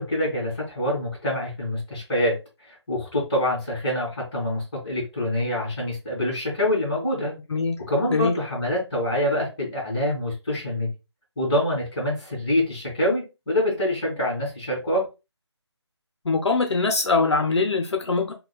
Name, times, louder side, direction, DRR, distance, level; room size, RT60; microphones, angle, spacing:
voice 1, 0.0-2.3 2.7-7.3 7.9-10.9 11.4-15.0, left 1 dB, 15° left, 1.7 m, -25 dB
voice 2, 7.5-7.8 8.1-8.3 16.2-18.3, left 4 dB, 70° left, 0.6 m, -22 dB
5.3 x 2.3 x 2.2 m
hypercardioid pair, 175°, 15 cm